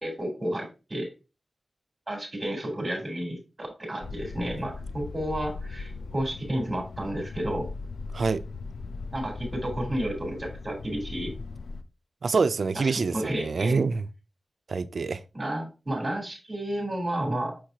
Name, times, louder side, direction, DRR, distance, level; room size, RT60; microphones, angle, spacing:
voice 1, 0.0-1.1 2.1-7.7 9.1-11.3 12.7-13.8 15.3-17.6, right 1 dB, 35° right, 3.7 m, -31 dB
sound 1, 4.0-11.8, left 4 dB, 85° left, 0.5 m, -38 dB
voice 2, 12.2-14.0 14.7-15.2, right 4 dB, 75° right, 0.4 m, -26 dB
6.4 x 6.3 x 2.8 m
cardioid pair, 45°, 0 cm